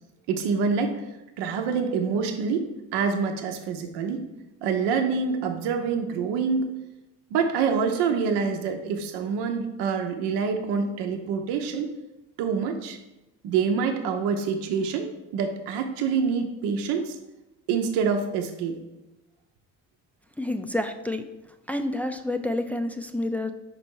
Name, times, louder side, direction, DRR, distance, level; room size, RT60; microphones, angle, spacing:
voice 1, 0.3-1.0 1.4-4.2 4.6-6.7 7.3-11.9 12.4-13.0 13.4-17.2 17.7-18.8, right 5 dB, 80° right, 4 dB, 0.8 m, -26 dB
voice 2, 20.4-21.2 21.7-23.5, left 1 dB, 5° left, 6 dB, 0.4 m, -28 dB
5.3 x 4.2 x 4.5 m, 0.99 s
supercardioid pair, 80°, 40 cm